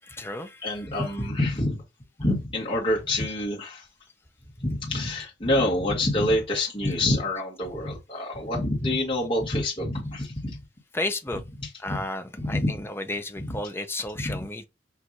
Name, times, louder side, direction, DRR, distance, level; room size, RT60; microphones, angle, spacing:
voice 1, 0.0-1.1 10.9-11.4 11.8-14.6, left 2 dB, 15° left, 0.5 m, -33 dB
voice 2, 0.6-1.8 2.2-3.8 4.6-10.6 11.9-12.0 12.5-12.7 13.5-13.6 14.2-14.4, left 1 dB, 30° left, 1.5 m, -26 dB
6.0 x 2.6 x 2.6 m
head